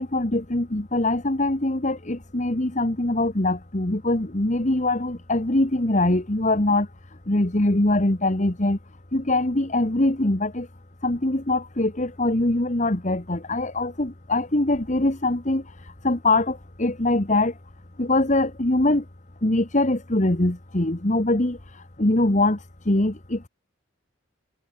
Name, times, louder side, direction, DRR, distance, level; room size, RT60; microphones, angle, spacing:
voice 1, 0.0-6.9 7.3-8.8 9.1-10.7 11.0-15.6 16.0-17.5 18.0-19.0 19.4-21.6 22.0-22.6 22.9-23.5, left 2 dB, 40° left, 1.6 m, -23 dB
head